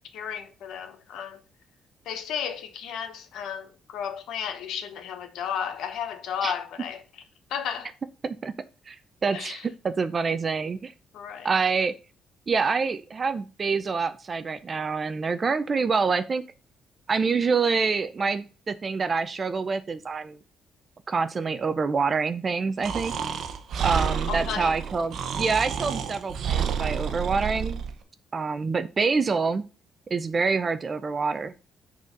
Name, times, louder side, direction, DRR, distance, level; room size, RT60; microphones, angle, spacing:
voice 1, 0.1-1.4 2.0-7.0 7.5-7.9 9.3-9.6 11.1-11.5 24.3-24.8, left 8 dB, 70° left, 1.0 m, -33 dB
voice 2, 8.2-8.5 8.9-9.0 9.2-10.9 11.4-11.9 12.5-16.4 17.1-20.4 21.1-23.1 23.8-27.8 28.3-29.7 30.1-31.5, right 4 dB, 25° right, 0.5 m, -26 dB
Breathing, 22.8-27.9, right 7 dB, 55° right, 0.9 m, -29 dB
6.2 x 4.2 x 5.2 m
cardioid pair, 160°, 0 cm